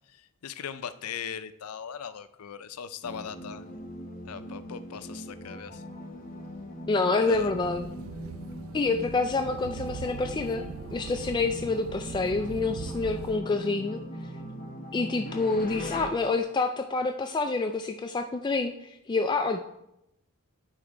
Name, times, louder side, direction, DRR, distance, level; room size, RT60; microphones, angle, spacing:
voice 1, 0.1-3.8 4.3-5.8 7.2-7.5, left 7 dB, 90° left, 12 dB, 0.5 m, -39 dB
sound 1, 3.0-16.1, equal, 40° left, 1.2 m, -40 dB
voice 2, 6.9-7.9 8.7-10.6 10.9-14.0 14.9-19.6, left 3 dB, 20° left, 6 dB, 0.3 m, -27 dB
sound 2, 7.3-13.4, right 7 dB, 65° right, 0.3 m, -42 dB
10.5 x 4.4 x 5.0 m, 0.86 s
head